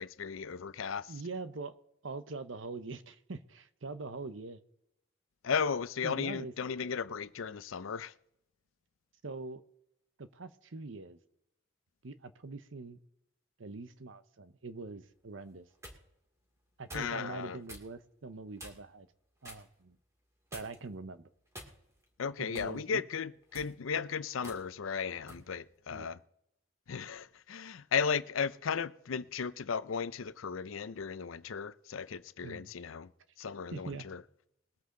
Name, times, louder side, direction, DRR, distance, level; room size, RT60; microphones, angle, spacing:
voice 1, 0.0-1.1 5.4-8.1 16.9-17.6 22.2-26.2 26.9-33.1 33.4-34.2, left 6 dB, 85° left, 0.5 m, -35 dB
voice 2, 1.1-1.7 2.0-4.6 6.0-6.5 9.2-9.6 10.2-11.2 12.0-13.0 13.6-15.7 16.8-19.1 19.4-20.0 20.5-21.3 22.4-23.0 25.9-26.2 32.4-32.7 33.7-34.1, right 3 dB, 70° right, 0.8 m, -43 dB
sound 1, 15.5-16.0 16.9-17.2 17.7-17.9 18.6-18.9 19.4-19.7 20.5-20.9 21.5-22.0 22.5-22.8 23.4-23.7 24.4-24.6 25.3-25.5, equal, 15° right, 2.4 m, -48 dB
21.5 x 8.3 x 3.8 m
head